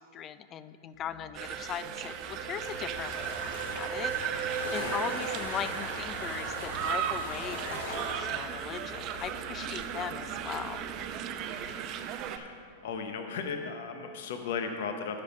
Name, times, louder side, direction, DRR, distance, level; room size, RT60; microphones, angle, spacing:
voice 1, 0.0-4.4 4.7-10.8 11.4-11.5, left 9 dB, 30° left, 14 dB, 0.4 m, -39 dB
Musical instrument, 0.9-11.7, left 8 dB, 55° left, 1.2 m, -53 dB
sound 1, 1.3-12.4, right 9 dB, 45° right, 0.6 m, -36 dB
sound 2, 2.6-8.1, left 1 dB, 85° left, 2.4 m, -40 dB
voice 2, 12.8-15.2, left 5 dB, 70° left, 6 dB, 0.7 m, -36 dB
12.0 x 5.3 x 5.3 m, 2.6 s
hypercardioid pair, 115°, 0 cm